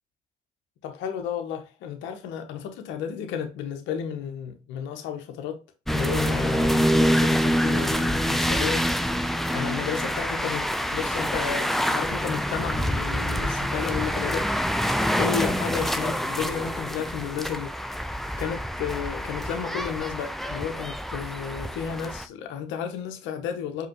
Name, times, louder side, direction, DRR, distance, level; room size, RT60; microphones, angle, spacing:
voice 1, 0.8-5.6 5.9-8.9 9.5-14.5 15.2-17.7 18.4-23.9, left 8 dB, 80° left, 0.7 m, -32 dB
sound 1, 5.9-22.3, equal, ahead, 0.5 m, -26 dB
4.9 x 2.9 x 2.9 m
hypercardioid pair, 45°, 19 cm